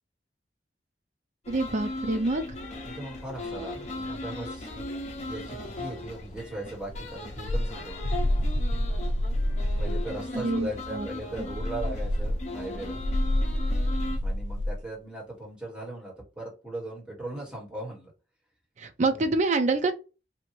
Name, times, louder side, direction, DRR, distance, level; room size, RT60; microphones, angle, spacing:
sound 1, 1.4-14.2, left 2 dB, 40° left, 0.7 m, -38 dB
voice 1, 1.5-2.4 10.3-11.1 18.8-19.9, right 3 dB, 40° right, 0.5 m, -26 dB
voice 2, 2.8-4.9 5.2-8.2 9.8-13.0 14.2-18.1 19.1-19.3, right 1 dB, 5° right, 1.5 m, -38 dB
sound 2, 6.9-10.1 11.3-14.8, left 1 dB, 90° left, 0.5 m, -28 dB
2.8 x 2.5 x 3.0 m
head